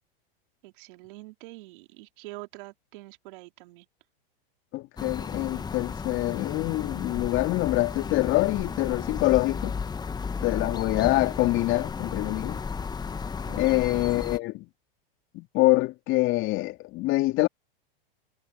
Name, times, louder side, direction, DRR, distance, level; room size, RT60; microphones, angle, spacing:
voice 1, 0.6-3.9 13.7-13.8, right 22 dB, 60° right, 3.7 m, -45 dB
voice 2, 4.7-9.8 10.4-12.6 13.5-14.7 15.3-17.5, left 19 dB, 40° left, 3.0 m, -25 dB
sound 1, 5.0-14.4, left 5 dB, 15° left, 1.2 m, -34 dB
hypercardioid pair, 115°, 30 cm